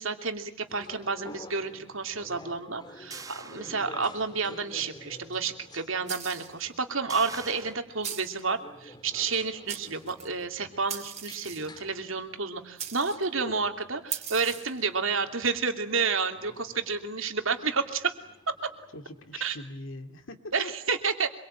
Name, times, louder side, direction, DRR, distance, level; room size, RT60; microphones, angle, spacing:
voice 1, 0.0-18.1 19.4-19.6 20.5-21.3, right 4 dB, 70° right, 6 dB, 2.9 m, -30 dB
sound 1, 0.7-19.4, left 1 dB, 20° left, 2.3 m, -51 dB
sound 2, 3.1-4.4 4.8-4.9 7.1-7.8, right 4 dB, 15° right, 1.1 m, -44 dB
sound 3, 6.1-6.6 8.0-8.4 9.3-9.4 9.7-10.3 10.9-11.8 12.8-13.3 14.1-14.8, right 9 dB, 35° right, 3.5 m, -38 dB
voice 2, 18.9-20.7, left 2 dB, 65° left, 7 dB, 2.4 m, -41 dB
26.0 x 23.5 x 8.9 m, 0.74 s
head